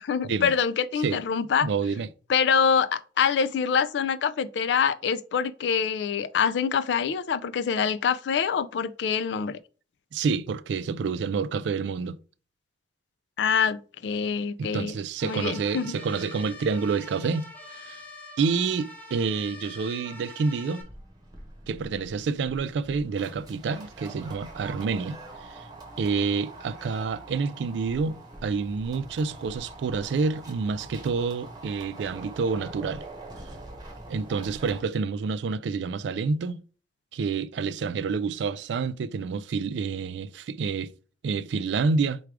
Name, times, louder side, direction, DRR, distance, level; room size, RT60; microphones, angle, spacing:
voice 1, 0.0-1.7 2.3-9.6 13.4-14.9 15.2-16.0, left 6 dB, 80° left, 0.4 m, -25 dB
voice 2, 1.6-2.1 10.1-12.2 14.6-18.0 18.4-20.9 21.7-25.2 25.5-25.6 26.0-33.0 34.1-36.6 37.1-40.9 41.2-42.2, right 5 dB, 80° right, 0.3 m, -28 dB
sound 1, 15.2-20.8, left 2 dB, 10° left, 0.7 m, -45 dB
sound 2, 20.8-34.8, right 2 dB, 25° right, 1.0 m, -44 dB
4.6 x 2.3 x 4.7 m
head